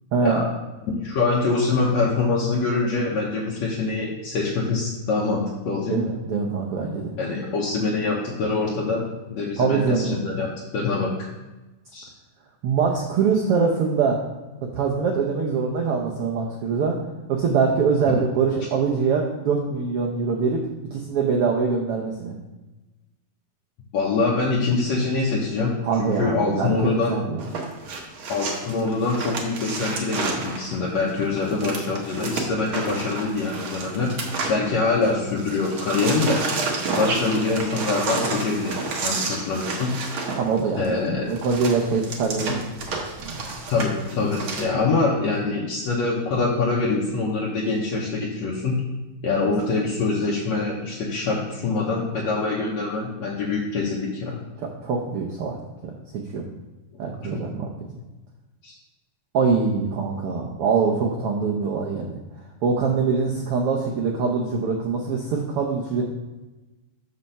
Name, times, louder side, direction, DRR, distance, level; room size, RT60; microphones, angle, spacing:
voice 1, 0.1-0.4 5.9-7.1 9.6-10.2 12.6-14.2 14.7-17.0 17.3-20.6 20.9-22.3 25.8-27.6 40.4-40.9 41.2-42.6 43.2-43.4 54.6-55.6 55.8-55.9 56.3-56.5 57.0-57.7 59.3-62.2 62.6-66.0, right 5 dB, 90° right, 0 dB, 1.2 m, -23 dB
voice 2, 0.9-6.0 7.2-10.5 10.7-11.1 11.9-12.1 18.1-18.2 23.9-27.2 28.3-34.1 34.5-36.4 37.0-39.9 40.8-41.3 42.5-42.6 43.7-48.8 49.2-54.4 57.3-57.4 58.6-58.7, left 3 dB, 65° left, -4 dB, 2.0 m, -24 dB
sound 1, 27.4-35.1 35.4-44.6, right 3 dB, 60° right, 1.5 m, -30 dB
5.8 x 5.3 x 6.6 m, 1.1 s
omnidirectional pair, 3.6 m